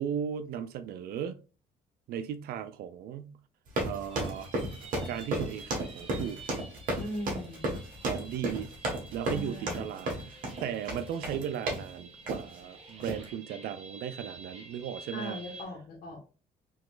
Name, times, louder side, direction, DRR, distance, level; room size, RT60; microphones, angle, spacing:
voice 1, 0.0-1.4 2.1-3.4 3.8-4.5 5.1-6.4 8.0-8.7 9.1-15.4, right 9 dB, 80° right, 0.5 m, -36 dB
sound 1, 3.7-11.9 12.3-12.6 13.0-13.3, right 1 dB, 60° right, 1.6 m, -33 dB
sound 2, 4.1-15.6, right 3 dB, 40° right, 1.5 m, -50 dB
voice 2, 7.0-7.8 9.3-9.9 15.1-16.2, left 1 dB, 70° left, 1.7 m, -39 dB
3.9 x 2.9 x 2.5 m
cardioid pair, 85°, 16 cm